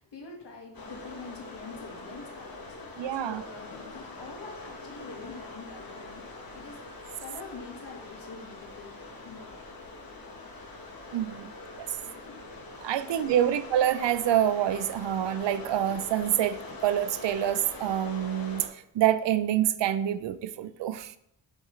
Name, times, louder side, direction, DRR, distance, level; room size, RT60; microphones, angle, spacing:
voice 1, 0.0-6.9 7.2-9.6 11.4-11.5 11.9-12.4 13.0-13.1 13.4-13.6, left 4 dB, 65° left, 0 dB, 1.8 m, -46 dB
sound 1, 0.7-18.7, left 3 dB, 50° left, 1.3 m, -43 dB
voice 2, 3.0-3.4 11.1-11.5 12.8-18.7 18.9-21.2, right 11 dB, 75° right, 14 dB, 0.5 m, -26 dB
6.2 x 5.7 x 3.2 m, 0.74 s
wide cardioid pair, 100°, 44 cm